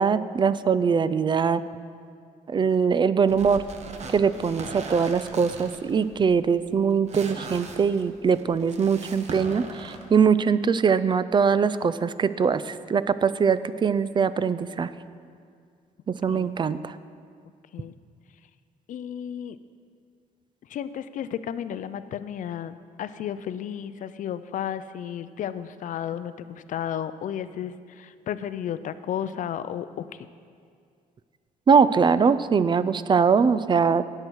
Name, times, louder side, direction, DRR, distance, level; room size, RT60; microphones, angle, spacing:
voice 1, 0.0-1.6 2.5-3.6 4.1-14.9 16.1-17.0 31.7-34.0, right 6 dB, 30° right, 14 dB, 0.4 m, -22 dB
sound 1, 3.3-10.0, right 4 dB, 50° right, 1.1 m, -40 dB
voice 2, 18.9-19.6 20.7-30.3, left 9 dB, 60° left, 13 dB, 0.5 m, -33 dB
17.5 x 6.6 x 4.7 m, 2.2 s
cardioid pair, 105°, 15 cm